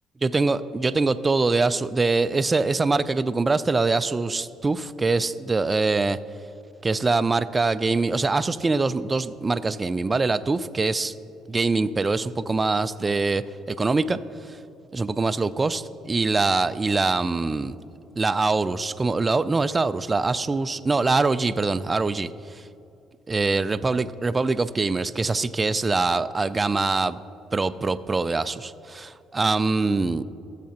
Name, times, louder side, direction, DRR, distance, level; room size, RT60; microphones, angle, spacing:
voice 1, 0.2-6.2 6.8-11.1 11.5-14.6 14.9-17.8 18.2-22.7 23.3-27.2 27.5-30.2, right 3 dB, 25° right, 15 dB, 0.3 m, -24 dB
14.0 x 7.5 x 2.9 m, 2.7 s
supercardioid pair, 70°, 0 cm